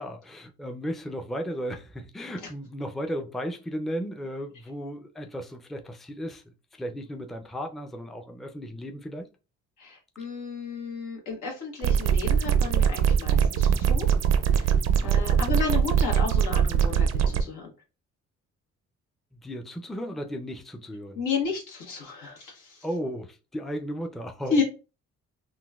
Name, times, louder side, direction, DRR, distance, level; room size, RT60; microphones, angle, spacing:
voice 1, 0.0-9.3 15.0-15.4 19.3-21.2 22.8-24.6, equal, ahead, 0.4 m, -35 dB
voice 2, 9.8-14.1 15.0-17.1 17.4-17.7 21.2-22.5 24.5-24.6, left 5 dB, 85° left, 1.3 m, -31 dB
sound 1, 11.8-17.4, right 8 dB, 60° right, 0.5 m, -22 dB
3.8 x 2.2 x 2.3 m
cardioid pair, 90°, 30 cm